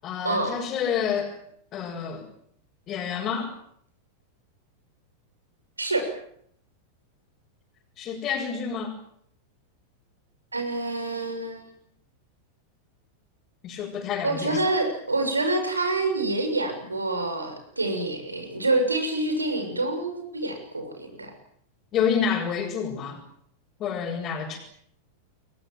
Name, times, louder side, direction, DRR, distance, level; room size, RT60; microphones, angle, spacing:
voice 1, 0.0-1.3 1.7-2.2 2.9-3.5 8.0-8.9 13.6-14.6 21.9-23.2 23.8-24.6, left 7 dB, 35° left, -2 dB, 6.6 m, -28 dB
voice 2, 5.8-6.1 10.5-11.7 14.2-21.3, right 2 dB, 80° right, 7 dB, 6.4 m, -27 dB
29.0 x 23.5 x 7.6 m, 0.68 s
figure-of-eight pair, 90°, 0 cm